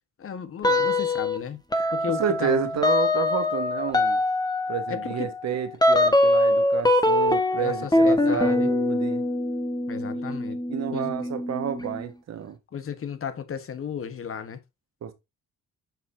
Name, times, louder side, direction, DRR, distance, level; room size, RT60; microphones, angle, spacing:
voice 1, 0.2-1.6 1.9-2.6 4.9-5.0 7.6-8.7 9.9-10.6 10.9-11.1 12.7-14.6, left 7 dB, 45° left, 1.4 m, -34 dB
sound 1, 0.6-1.4 1.7-12.1, left 1 dB, 15° left, 1.4 m, -23 dB
voice 2, 2.2-4.2 4.7-9.3 10.1-10.4 10.7-12.6 15.0-15.1, right 8 dB, 60° right, 1.7 m, -30 dB
7.5 x 5.6 x 2.7 m
cardioid pair, 90°, 30 cm